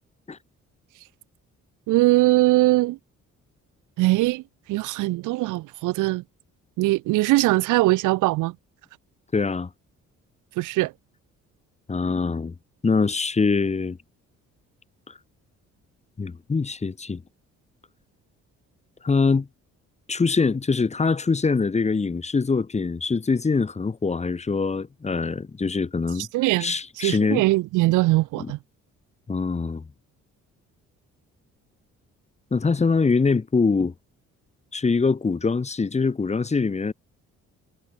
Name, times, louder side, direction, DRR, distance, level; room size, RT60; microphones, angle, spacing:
voice 1, 1.9-3.0 4.0-4.4 4.7-6.2 6.8-8.6 10.6-10.9 26.2-28.6, right 19 dB, 85° right, 0.5 m, -21 dB
voice 2, 9.3-9.7 11.9-12.5 12.8-14.0 16.2-17.2 19.0-19.5 20.1-26.3 26.6-27.4 28.4-28.5 29.3-29.9 32.5-33.9 34.7-36.9, left 4 dB, 20° left, 1.1 m, -23 dB
cardioid pair, 90°, 30 cm